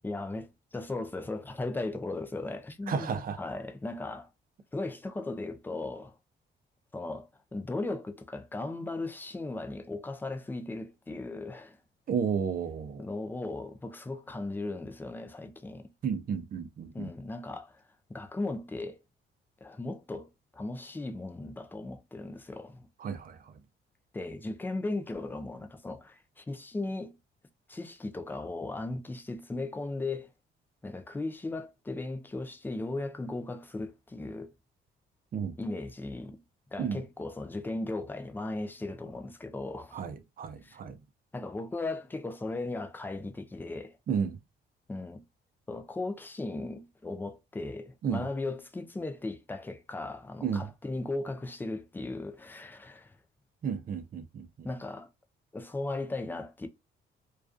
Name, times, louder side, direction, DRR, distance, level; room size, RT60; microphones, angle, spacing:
voice 1, 0.0-4.3 4.7-6.2 6.9-11.8 13.0-15.9 16.9-17.8 18.1-19.0 19.6-22.9 24.1-27.2 27.7-30.3 30.8-34.5 35.6-36.4 36.7-40.0 40.6-40.8 41.3-44.0 44.9-45.2 45.7-53.1 54.6-55.1 55.5-56.7, left 2 dB, 10° left, 0.3 m, -37 dB
voice 2, 2.9-3.4 12.1-13.1 16.0-17.1 23.0-23.5 35.3-35.5 36.8-37.0 39.9-41.0 44.1-44.4 48.0-48.2 50.4-50.7 53.6-54.7, right 6 dB, 45° right, 0.5 m, -32 dB
2.3 x 2.2 x 2.4 m
cardioid pair, 90°, 20 cm